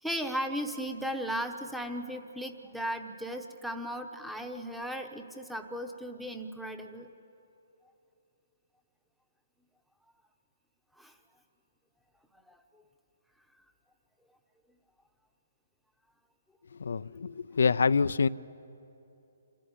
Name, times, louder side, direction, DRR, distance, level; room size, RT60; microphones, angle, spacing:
voice 1, 0.0-7.1 11.0-11.2 12.5-12.8, equal, ahead, 6 dB, 1.0 m, -36 dB
voice 2, 16.8-18.3, left 5 dB, 80° left, 15 dB, 0.4 m, -26 dB
26.5 x 14.0 x 9.7 m, 2.9 s
hypercardioid pair, 155°, 0 cm